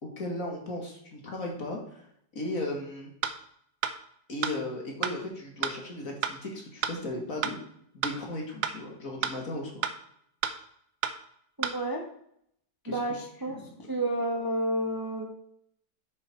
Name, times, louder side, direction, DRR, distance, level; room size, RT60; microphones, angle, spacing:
voice 1, 0.0-2.1 2.3-3.1 4.3-7.6 7.9-9.8 12.8-13.0, left 1 dB, 50° left, 0 dB, 2.4 m, -36 dB
sound 1, 3.2-3.3 3.8-3.9 4.4-4.5 5.0-5.1 5.6-5.7 6.2-6.3 6.8-6.9 7.4-7.5 8.0-8.1 8.6-8.7 9.2-9.3 9.8-9.9 10.4-10.5 11.0-11.1 11.6-11.7, right 9 dB, 85° right, 1.5 m, -29 dB
voice 2, 11.6-12.0 12.9-13.6 13.9-15.3, right 1 dB, 15° right, 1 dB, 1.1 m, -30 dB
9.3 x 6.9 x 4.5 m, 0.68 s
omnidirectional pair, 1.9 m